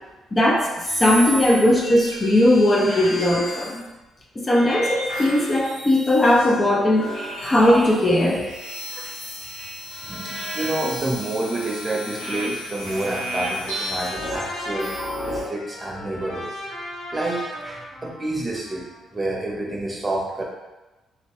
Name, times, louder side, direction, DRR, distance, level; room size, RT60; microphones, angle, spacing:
voice 1, 0.3-3.9 4.4-7.1 7.4-8.4, left 1 dB, 25° left, -2 dB, 0.5 m, -18 dB
sound 1, 0.8-3.8 4.5-6.7 7.0-15.5, equal, 80° left, 1.2 m, -32 dB
voice 2, 10.0-14.9 15.2-16.7 17.1-20.4, right 2 dB, 20° right, -2 dB, 0.8 m, -29 dB
Trumpet, 12.8-19.1, left 1 dB, 55° left, 1.5 m, -37 dB
3.0 x 2.7 x 3.0 m, 1.1 s
cardioid pair, 90°, 0 cm